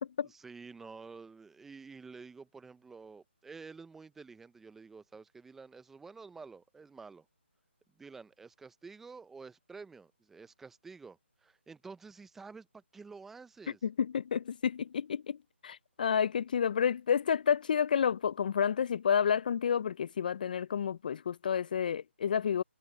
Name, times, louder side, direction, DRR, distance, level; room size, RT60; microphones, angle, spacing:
voice 1, 0.2-7.3 8.0-13.8, right 4 dB, 5° right, 0.6 m, -50 dB
voice 2, 13.8-15.4 15.6-22.6, left 7 dB, 45° left, 0.4 m, -30 dB
figure-of-eight pair, 155°, 7 cm